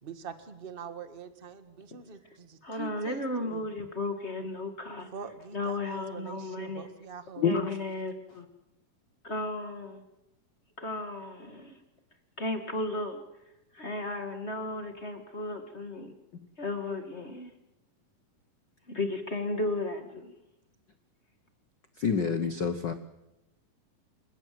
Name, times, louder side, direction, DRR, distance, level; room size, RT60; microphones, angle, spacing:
voice 1, 0.0-3.7 5.1-7.6, right 6 dB, 35° right, 10 dB, 0.8 m, -44 dB
voice 2, 2.6-5.1 5.5-6.8 7.4-8.5 9.2-10.0 10.8-11.8 12.4-13.2 13.7-16.1 16.6-17.5 18.9-20.3, left 2 dB, 25° left, 6 dB, 1.8 m, -34 dB
voice 3, 7.4-7.7 22.0-22.9, left 6 dB, 75° left, 9 dB, 1.0 m, -27 dB
28.5 x 16.5 x 7.8 m, 0.90 s
omnidirectional pair, 3.8 m